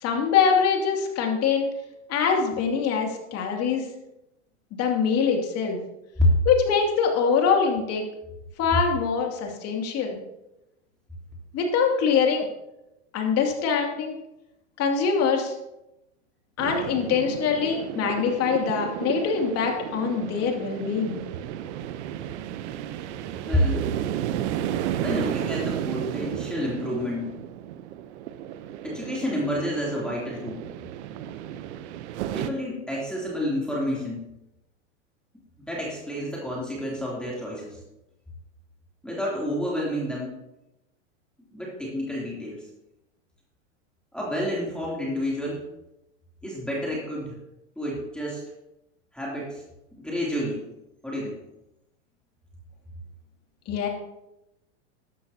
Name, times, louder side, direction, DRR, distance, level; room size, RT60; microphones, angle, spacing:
voice 1, 0.0-1.7 2.1-3.8 4.7-5.8 6.4-8.0 8.6-10.2 11.5-12.5 13.1-14.2 14.8-15.5 16.6-21.2 53.7-53.9, left 6 dB, 40° left, 2 dB, 2.7 m, -24 dB
sound 1, 16.6-32.5, right 11 dB, 65° right, 0.9 m, -33 dB
voice 2, 23.4-23.9 25.0-27.3 28.8-30.6 32.3-34.3 35.6-37.8 39.0-40.4 41.5-42.7 44.1-45.7 46.4-47.4 47.8-48.4 49.1-49.6 49.9-50.6 51.0-51.4, equal, ahead, -5 dB, 3.1 m, -29 dB
14.0 x 12.0 x 2.9 m, 0.91 s
hypercardioid pair, 105°, 37 cm